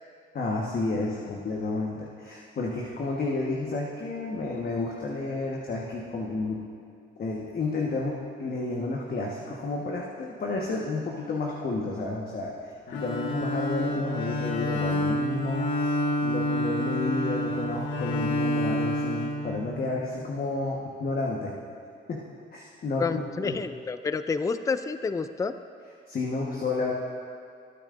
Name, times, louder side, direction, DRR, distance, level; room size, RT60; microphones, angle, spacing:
voice 1, 0.3-6.6 7.2-12.5 12.9-15.7 16.2-21.5 22.1-22.2 22.5-23.5 26.1-26.9, left 3 dB, 50° left, -2 dB, 1.3 m, -31 dB
Bowed string instrument, 12.9-20.1, left 1 dB, 90° left, 1.2 m, -28 dB
voice 2, 23.0-25.6, left 4 dB, 15° left, 11 dB, 0.4 m, -29 dB
19.5 x 9.0 x 2.6 m, 2.4 s
cardioid pair, 90°, 20 cm